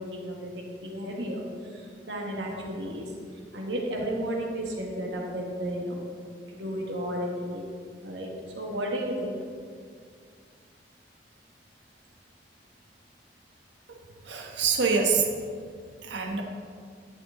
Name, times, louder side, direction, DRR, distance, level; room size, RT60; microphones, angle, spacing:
voice 1, 0.0-3.1 3.5-6.0 6.5-7.7 8.0-8.3 8.5-9.4, equal, 75° right, -1 dB, 1.7 m, -33 dB
voice 2, 14.2-15.3 16.0-16.4, right 5 dB, 90° right, 2 dB, 1.2 m, -25 dB
11.5 x 6.9 x 3.8 m, 2.1 s
head